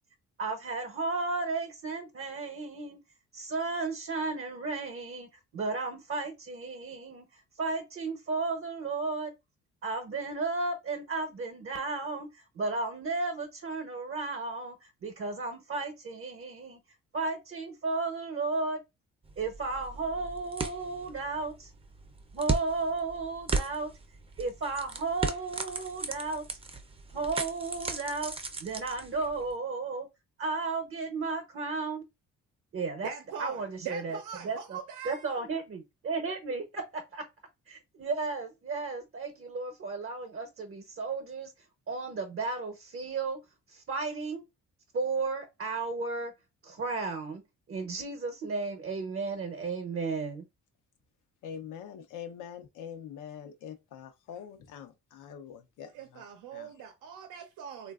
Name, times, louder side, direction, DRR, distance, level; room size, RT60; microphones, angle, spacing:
voice 1, 0.4-3.0 3.3-7.3 7.6-9.3 9.8-16.8 17.1-18.8 19.4-21.7 22.3-23.9 24.4-26.4 27.1-28.3 28.6-30.1 30.4-32.0 32.7-33.1 33.4-34.8 35.0-37.3 37.7-41.5 41.9-43.4 43.7-44.4 44.9-46.3 46.6-47.4 47.7-50.5, right 3 dB, 45° right, 0.8 m, -34 dB
sound 1, 19.2-29.5, right 3 dB, 20° right, 0.6 m, -37 dB
voice 2, 33.0-35.2 55.9-57.9, right 8 dB, 80° right, 0.6 m, -41 dB
voice 3, 51.4-56.2 56.5-56.7, left 8 dB, 90° left, 0.8 m, -44 dB
3.2 x 2.5 x 2.3 m
cardioid pair, 90°, 30 cm